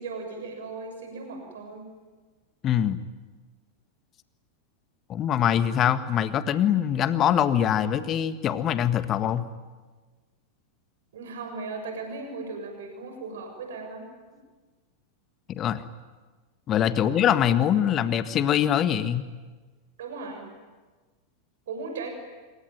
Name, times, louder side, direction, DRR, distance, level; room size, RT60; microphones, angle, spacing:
voice 1, 0.0-1.9 11.1-14.0 16.9-17.3 20.0-20.5 21.7-22.1, right 4 dB, 60° right, 4 dB, 7.1 m, -37 dB
voice 2, 2.6-3.0 5.1-9.4 15.5-15.8 16.7-19.2, left 9 dB, 30° left, 12 dB, 1.6 m, -23 dB
26.5 x 23.5 x 9.3 m, 1.3 s
figure-of-eight pair, 90°, 0 cm